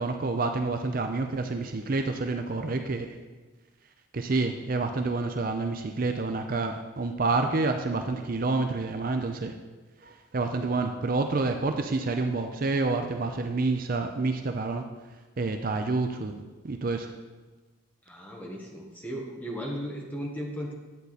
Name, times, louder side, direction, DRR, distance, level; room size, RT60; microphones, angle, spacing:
voice 1, 0.0-3.1 4.1-9.5 10.0-14.8 15.4-16.3 16.6-17.1, right 3 dB, 45° right, 6 dB, 0.5 m, -28 dB
voice 2, 18.1-20.7, equal, 10° left, -1 dB, 1.3 m, -36 dB
10.5 x 8.2 x 4.1 m, 1.3 s
head